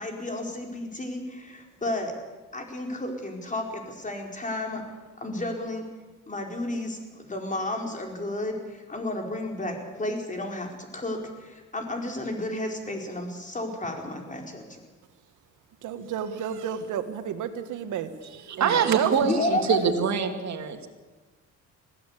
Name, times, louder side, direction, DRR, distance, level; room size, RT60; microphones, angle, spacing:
voice 1, 0.0-2.1 2.5-4.8 5.2-5.8 6.3-14.8 19.2-19.8, left 1 dB, 25° left, 2 dB, 4.9 m, -32 dB
voice 2, 15.8-19.1, right 9 dB, 80° right, 9 dB, 1.7 m, -32 dB
voice 3, 18.5-20.9, right 6 dB, 65° right, 5 dB, 2.6 m, -24 dB
21.0 x 15.5 x 8.4 m, 1.2 s
cardioid pair, 90°, 30 cm